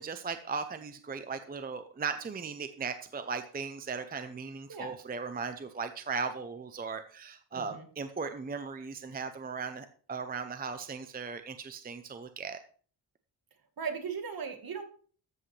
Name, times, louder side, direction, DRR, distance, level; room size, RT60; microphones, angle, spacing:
voice 1, 0.0-12.6, right 5 dB, 20° right, 9 dB, 0.6 m, -37 dB
voice 2, 7.5-7.9 13.8-14.8, right 6 dB, 55° right, 6 dB, 1.6 m, -37 dB
13.5 x 8.2 x 3.2 m, 0.44 s
wide cardioid pair, 180°, 42 cm